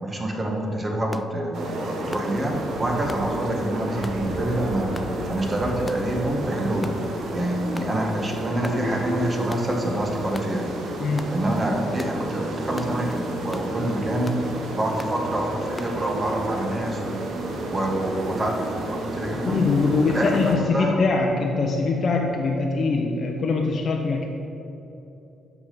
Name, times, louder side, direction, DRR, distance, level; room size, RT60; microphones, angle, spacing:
voice 1, 0.0-4.9 5.3-6.9 7.3-10.7 11.3-14.3 14.7-17.2 17.7-19.6 20.1-21.0, right 1 dB, 25° right, 1 dB, 1.4 m, -27 dB
sound 1, 1.1-1.3 2.1-2.3 3.1-3.3 4.0-4.2 4.9-5.1 5.9-6.1 6.8-7.0 7.7-7.9 8.6-8.8 9.5-9.7 10.3-10.5 11.2-11.4 12.0-12.2 12.8-13.0 13.5-13.7 14.2-14.4 15.0-15.2 15.8-15.9, left 2 dB, 15° left, 0.3 m, -38 dB
sound 2, 1.5-20.6, right 1 dB, 65° right, 1.2 m, -31 dB
voice 2, 11.0-11.4 13.8-13.9 19.5-24.3, left 3 dB, 50° left, 1 dB, 0.7 m, -23 dB
5.9 x 5.9 x 6.7 m, 3.0 s
cardioid pair, 90°, 0 cm